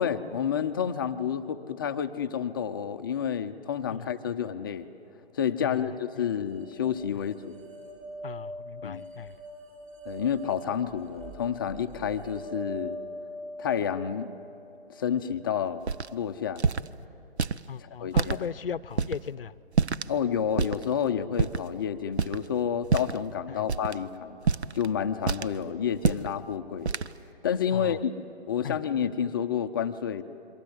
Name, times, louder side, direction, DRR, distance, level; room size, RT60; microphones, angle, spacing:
voice 1, 0.0-4.9 5.3-7.5 8.8-9.0 10.1-13.0 13.6-14.3 15.0-15.8 16.1-16.6 17.8-18.4 20.1-24.4 24.7-26.9 27.4-28.1 28.5-30.2, left 8 dB, 20° left, 9 dB, 0.6 m, -29 dB
voice 2, 3.9-4.4 5.6-6.3 8.2-9.3 17.7-19.6 23.5-23.6 27.7-28.0 28.6-28.8, left 7 dB, 60° left, 17 dB, 0.7 m, -38 dB
sound 1, 6.5-15.6, right 1 dB, 35° right, 6.8 m, -43 dB
sound 2, 15.9-16.1 16.6-16.9 17.4-17.6 18.1-18.4 19.0-19.2 19.7-20.1 20.6-20.8 21.4-21.7 22.1-22.5 22.8-23.2 23.7-23.9 24.5-24.9 25.3-25.6 25.9-26.3 26.9-27.1, right 5 dB, 80° right, 0.8 m, -26 dB
27.5 x 23.5 x 7.8 m, 2.7 s
figure-of-eight pair, 140°, 33 cm